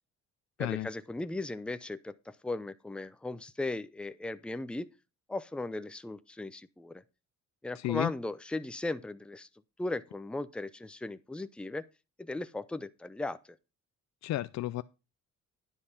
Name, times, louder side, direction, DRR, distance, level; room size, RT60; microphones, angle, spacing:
voice 1, 0.6-4.9 5.3-7.0 7.6-9.5 9.8-11.8 12.2-13.4, left 2 dB, 5° left, 0.6 m, -37 dB
voice 2, 7.8-8.1 14.2-14.8, left 15 dB, 65° left, 0.5 m, -32 dB
10.5 x 5.4 x 5.6 m
cardioid pair, 90°, 30 cm